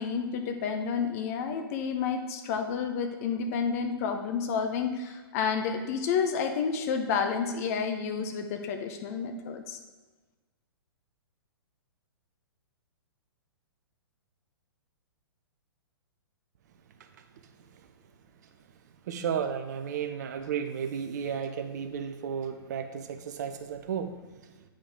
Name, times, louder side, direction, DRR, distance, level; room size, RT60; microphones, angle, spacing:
voice 1, 0.0-9.8, left 6 dB, 35° left, 5 dB, 0.9 m, -30 dB
voice 2, 19.1-24.5, right 7 dB, 45° right, 7 dB, 0.8 m, -33 dB
8.7 x 5.0 x 3.7 m, 1.3 s
figure-of-eight pair, 115°, 13 cm